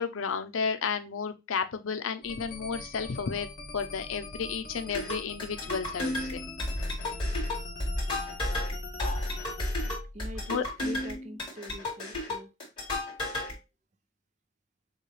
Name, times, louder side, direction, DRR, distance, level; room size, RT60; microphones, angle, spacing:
voice 1, 0.0-3.5 3.7-6.4 10.5-10.6, left 6 dB, 85° left, 0.6 m, -32 dB
sound 1, 2.2-10.0, left 3 dB, 45° left, 1.5 m, -43 dB
sound 2, 4.9-13.5, left 1 dB, 25° left, 2.3 m, -32 dB
voice 2, 10.1-12.5, equal, 35° right, 0.5 m, -43 dB
6.4 x 2.4 x 3.2 m
head